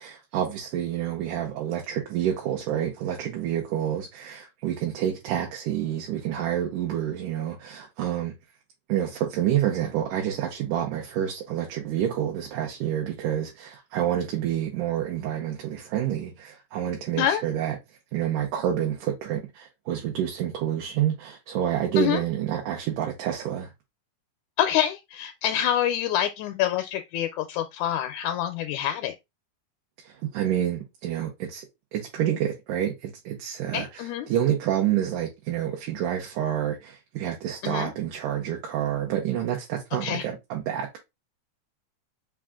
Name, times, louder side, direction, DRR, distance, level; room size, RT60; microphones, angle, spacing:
voice 1, 0.0-8.3 8.9-17.8 18.1-23.7 30.0-31.7 31.9-41.0, right 10 dB, 85° right, 2.4 m, -28 dB
voice 2, 24.6-29.1 33.7-34.3 37.6-37.9 40.0-40.3, left 11 dB, 80° left, 1.9 m, -26 dB
5.4 x 2.4 x 3.5 m
omnidirectional pair, 3.5 m